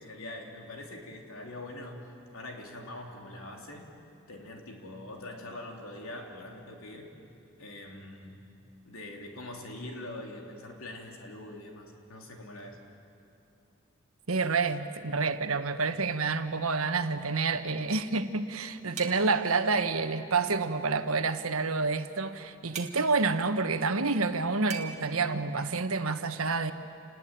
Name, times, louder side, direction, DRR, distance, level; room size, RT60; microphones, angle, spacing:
voice 1, 0.0-2.1 2.3-3.9 4.3-7.1 7.6-8.4 8.9-12.8, left 1 dB, 75° left, 1 dB, 3.6 m, -43 dB
voice 2, 14.3-26.7, right 4 dB, 80° right, 9 dB, 1.3 m, -28 dB
sound 1, 19.0-19.5 22.7-23.0 24.7-25.0, right 7 dB, 35° right, 2.1 m, -39 dB
29.5 x 20.0 x 9.3 m, 2.8 s
head